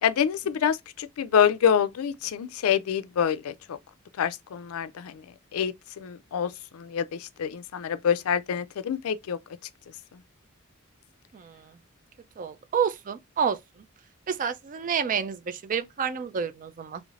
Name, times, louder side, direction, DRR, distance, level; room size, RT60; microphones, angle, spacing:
voice 1, 0.0-3.8 4.2-5.2 5.5-9.4, left 8 dB, 80° left, 0.4 m, -26 dB
voice 2, 11.3-11.8 12.4-13.9 14.3-17.0, right 7 dB, 40° right, 0.4 m, -29 dB
3.1 x 3.0 x 2.4 m
head